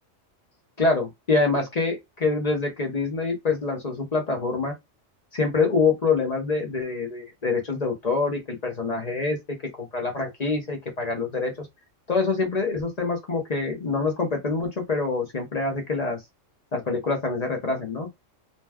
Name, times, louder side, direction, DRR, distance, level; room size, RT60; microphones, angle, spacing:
voice 1, 0.8-4.7 5.3-9.4 9.8-11.7 12.1-16.2 16.7-18.1, left 4 dB, 40° left, 0.7 m, -25 dB
2.6 x 2.2 x 3.3 m
omnidirectional pair, 1.3 m